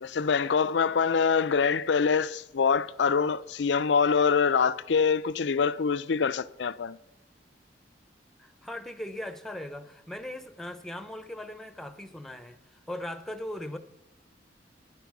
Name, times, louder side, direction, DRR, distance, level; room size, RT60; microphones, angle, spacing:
voice 1, 0.0-7.0, left 5 dB, 70° left, 0.5 m, -25 dB
voice 2, 8.4-13.8, left 1 dB, ahead, 0.7 m, -39 dB
12.5 x 10.5 x 6.0 m
head